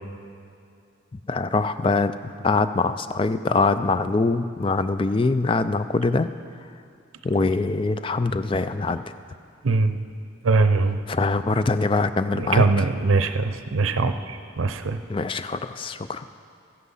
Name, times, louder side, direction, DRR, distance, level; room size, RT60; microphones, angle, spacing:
voice 1, 1.3-6.3 7.2-9.0 11.1-12.9 15.1-16.2, left 3 dB, 25° left, 12 dB, 0.3 m, -23 dB
voice 2, 9.6-10.0 10.4-11.0 12.3-15.0, right 3 dB, 85° right, 9 dB, 0.6 m, -22 dB
14.0 x 10.0 x 5.6 m, 2.5 s
head